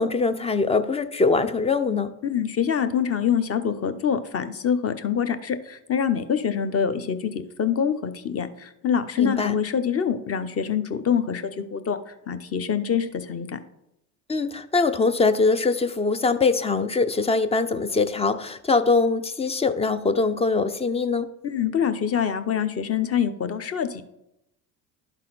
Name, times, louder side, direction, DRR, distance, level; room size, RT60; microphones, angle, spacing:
voice 1, 0.0-2.2 9.2-9.6 14.3-21.3, left 4 dB, 15° left, 0.3 m, -22 dB
voice 2, 2.2-13.6 21.4-24.0, left 7 dB, 30° left, 0.7 m, -25 dB
11.5 x 4.1 x 4.0 m
hypercardioid pair, 65°, 47 cm